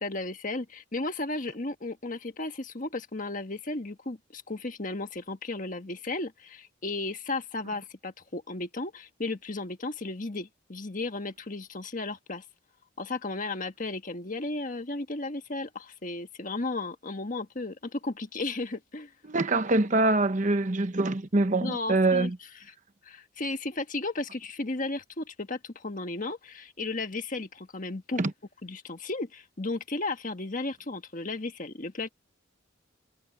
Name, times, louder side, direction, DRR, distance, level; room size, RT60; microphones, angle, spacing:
voice 1, 0.0-12.4 13.0-19.1 21.6-22.3 23.0-28.2 28.6-32.1, left 2 dB, 40° left, 1.5 m, -34 dB
voice 2, 19.2-22.4 28.2-28.3, right 2 dB, 40° right, 1.0 m, -24 dB
head